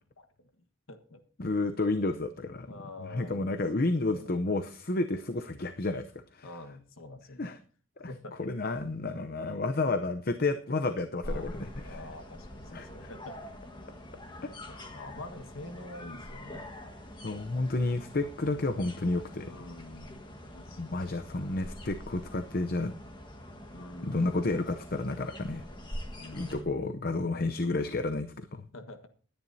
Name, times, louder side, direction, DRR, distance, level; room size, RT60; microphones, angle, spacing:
voice 1, 0.2-1.2 2.7-4.3 6.4-7.5 8.0-8.4 11.2-11.6 11.8-13.4 13.7-13.8 14.7-16.7 19.4-21.5 23.7-24.4 26.1-27.0 28.7-29.1, left 2 dB, 85° left, 7 dB, 1.5 m, -47 dB
voice 2, 1.4-2.7 3.0-6.1 6.3-6.5 7.4-7.6 8.0-8.1 8.4-12.0 12.7-12.9 14.4-14.9 17.2-19.5 20.8-22.9 24.0-25.6 26.3-28.7, left 2 dB, 45° left, 9 dB, 0.7 m, -31 dB
sound 1, 11.2-26.6, equal, 20° left, 1.6 m, -44 dB
20.0 x 10.5 x 2.7 m, 0.39 s
head